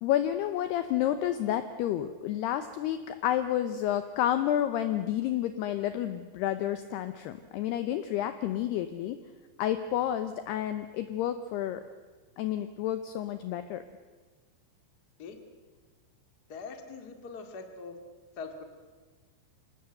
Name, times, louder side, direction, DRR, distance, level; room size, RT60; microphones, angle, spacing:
voice 1, 0.0-9.2 9.6-11.8 12.4-13.8, left 11 dB, 85° left, 10 dB, 2.3 m, -30 dB
voice 2, 16.5-18.0 18.4-18.6, left 4 dB, 55° left, 6 dB, 1.0 m, -42 dB
26.0 x 18.5 x 7.9 m, 1.4 s
omnidirectional pair, 5.7 m